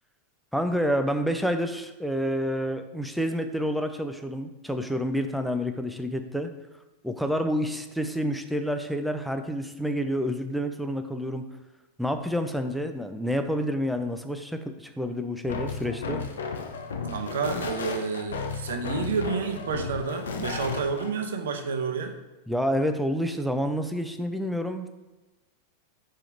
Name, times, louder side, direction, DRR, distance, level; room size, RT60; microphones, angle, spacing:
voice 1, 0.5-6.5 7.0-11.4 12.0-16.2 22.5-24.9, equal, ahead, 6 dB, 0.6 m, -28 dB
sound 1, 15.4-21.1, left 5 dB, 65° left, 0.6 m, -34 dB
voice 2, 17.1-22.1, right 5 dB, 60° right, 5 dB, 0.8 m, -30 dB
4.9 x 4.4 x 5.1 m, 1.1 s
figure-of-eight pair, 90°, 0 cm